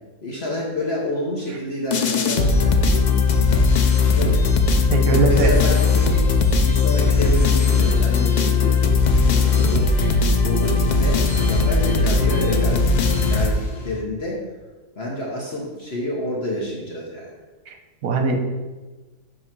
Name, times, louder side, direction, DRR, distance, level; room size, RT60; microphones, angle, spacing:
voice 1, 0.2-3.6 4.1-4.4 5.0-6.3 6.7-10.1 10.4-12.9 13.2-14.4 15.0-17.4, left 1 dB, 50° left, -3 dB, 1.3 m, -29 dB
sound 1, 1.9-14.0, left 4 dB, 85° left, 0.4 m, -18 dB
voice 2, 4.9-5.5 17.7-17.8 18.0-18.4, right 4 dB, 80° right, 4 dB, 1.3 m, -20 dB
7.6 x 3.2 x 5.9 m, 1.2 s
omnidirectional pair, 1.5 m